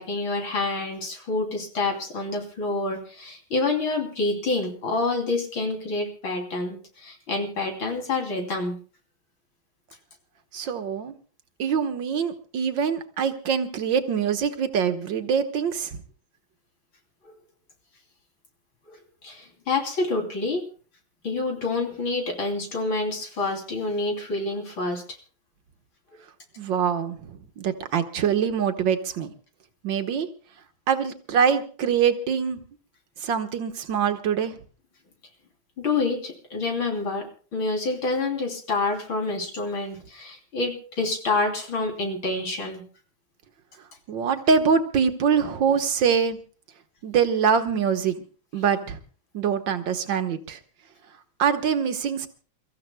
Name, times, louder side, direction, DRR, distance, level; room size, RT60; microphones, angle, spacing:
voice 1, 0.0-8.8 17.2-17.3 18.9-19.0 19.2-20.6 21.2-25.0 26.1-26.2 35.8-42.8, left 3 dB, 70° left, 2 dB, 3.8 m, -27 dB
voice 2, 10.5-11.1 11.6-16.0 26.6-29.3 29.8-30.3 30.9-32.6 33.2-34.5 44.1-46.4 47.0-48.2 48.5-49.0 49.3-50.6 51.4-52.3, right 7 dB, 65° right, 7 dB, 1.8 m, -24 dB
29.5 x 14.5 x 2.2 m, 0.39 s
omnidirectional pair, 2.2 m